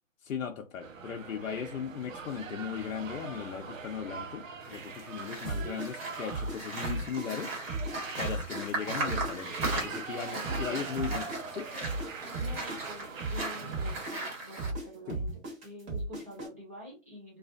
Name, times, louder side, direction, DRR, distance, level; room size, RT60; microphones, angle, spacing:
voice 1, 0.2-7.6 8.2-11.7 15.1-15.2, left 7 dB, 80° left, 0.6 m, -37 dB
sound 1, 0.8-14.1, right 5 dB, 75° right, 0.7 m, -43 dB
sound 2, 4.6-14.7, right 2 dB, 50° right, 1.3 m, -38 dB
Simple Acoustic break, 5.4-7.9 8.2-12.1 12.3-16.5, right 2 dB, 30° right, 1.3 m, -35 dB
voice 2, 10.3-10.8 12.4-17.4, equal, 15° right, 0.4 m, -47 dB
2.4 x 2.4 x 2.4 m
hypercardioid pair, 145°, 39 cm